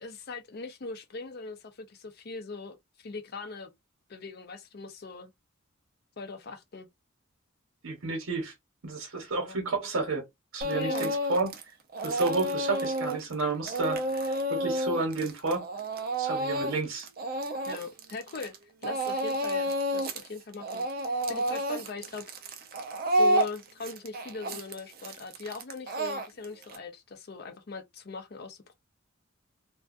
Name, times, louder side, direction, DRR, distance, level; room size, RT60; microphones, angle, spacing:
voice 1, 0.0-3.7 4.1-5.3 6.2-6.9 9.4-9.6 10.7-11.1 17.7-18.5 18.8-22.2 23.1-28.8, left 4 dB, 50° left, 0.5 m, -40 dB
voice 2, 7.8-8.5 8.8-10.3 10.5-11.5 12.0-14.0 14.5-15.7 16.2-17.1, right 3 dB, 80° right, 0.9 m, -30 dB
Speech / Crying sobbing, 10.6-11.6 11.9-18.6 18.8-20.3 20.5-26.8, right 1 dB, 45° right, 0.4 m, -30 dB
2.4 x 2.3 x 2.4 m
head